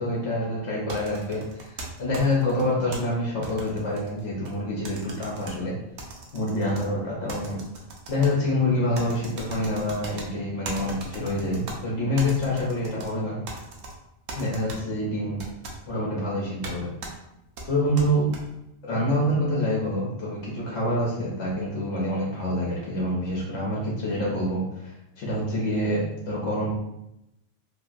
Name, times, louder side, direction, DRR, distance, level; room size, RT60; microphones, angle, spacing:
voice 1, 0.0-5.7 6.3-7.6 8.1-13.4 14.4-15.4 15.9-16.9 17.6-18.3 18.8-26.7, left 1 dB, 65° left, -5 dB, 1.0 m, -26 dB
Keyboard mashing (laptop), 0.9-3.0 3.4-4.5 4.8-5.5 6.0-6.8 7.3-8.3 8.9-10.3 10.6-11.8 12.2-13.1 13.5-13.9 14.3-14.8 15.4-15.8 16.6-16.7 17.0-17.1 17.6-18.4, right 2 dB, 75° right, 1.0 m, -38 dB
3.1 x 2.7 x 2.4 m, 0.87 s
omnidirectional pair, 1.4 m